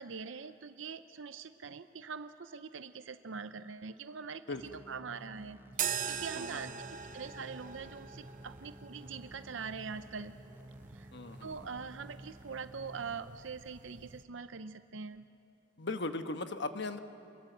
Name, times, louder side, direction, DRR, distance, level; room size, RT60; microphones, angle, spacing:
voice 1, 0.0-4.4 4.9-6.9 7.1-10.3 10.9-11.1 11.4-15.2, right 5 dB, 75° right, 11 dB, 0.6 m, -43 dB
voice 2, 4.5-4.8 6.3-6.6 11.1-11.9 15.8-17.0, left 3 dB, 65° left, 8 dB, 1.2 m, -39 dB
sound 1, 4.5-13.2, right 1 dB, 10° right, 0.6 m, -54 dB
sound 2, 5.7-14.2, right 8 dB, 45° right, 0.9 m, -43 dB
27.5 x 21.5 x 7.9 m, 2.7 s
head